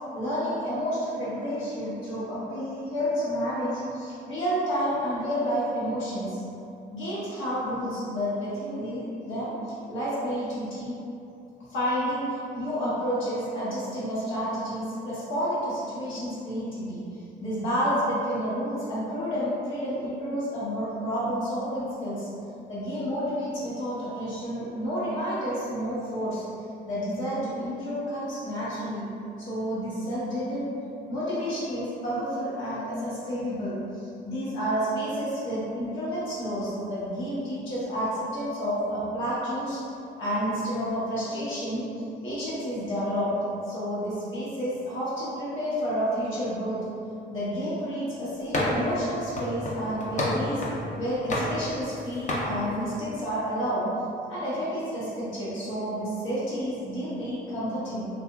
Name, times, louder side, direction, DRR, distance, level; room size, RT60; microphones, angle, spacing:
voice 1, 0.1-6.4 6.9-9.5 9.9-10.9 11.7-17.0 17.4-22.3 22.7-26.4 26.8-29.1 29.4-30.7 31.1-39.8 40.2-41.9 42.2-43.4 43.6-46.8 47.3-50.6 50.9-53.8 54.3-58.1, equal, 85° left, -10 dB, 1.1 m, -30 dB
sound 1, 48.5-49.0 49.4-50.9 51.3-52.0 52.3-52.5, left 1 dB, 40° left, 0.5 m, -28 dB
2.8 x 2.6 x 2.2 m, 2.6 s
cardioid pair, 90°, 20 cm